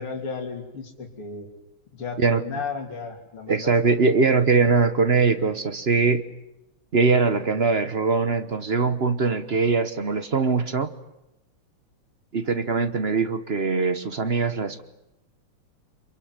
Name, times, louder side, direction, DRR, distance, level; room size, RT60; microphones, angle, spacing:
voice 1, 0.0-1.5 1.9-3.7, left 5 dB, 80° left, 2 dB, 4.0 m, -34 dB
voice 2, 3.5-6.2 6.9-10.9 12.3-14.8, right 4 dB, 40° right, 12 dB, 0.9 m, -22 dB
27.5 x 23.0 x 9.5 m, 0.92 s
omnidirectional pair, 2.4 m